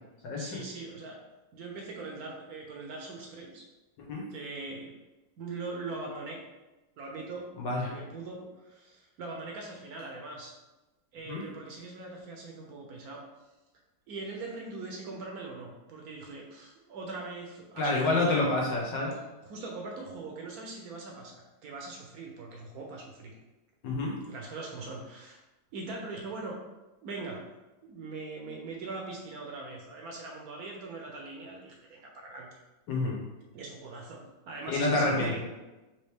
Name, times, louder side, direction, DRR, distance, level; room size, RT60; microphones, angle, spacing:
voice 1, 0.4-1.2 1.5-3.7 4.3-4.9 5.4-6.4 7.0-7.5 7.9-10.6 11.1-13.2 14.1-18.4 19.4-23.3 24.1-25.4 25.7-26.6 27.0-27.4 27.8-32.5 33.5-35.4, right 3 dB, 65° right, 0 dB, 1.0 m, -41 dB
voice 2, 7.6-7.9 11.3-11.4 17.8-19.1 23.8-24.1 32.9-33.2 34.7-35.4, left 2 dB, 85° left, -2 dB, 1.7 m, -28 dB
4.1 x 3.0 x 3.4 m, 1.1 s
omnidirectional pair, 1.9 m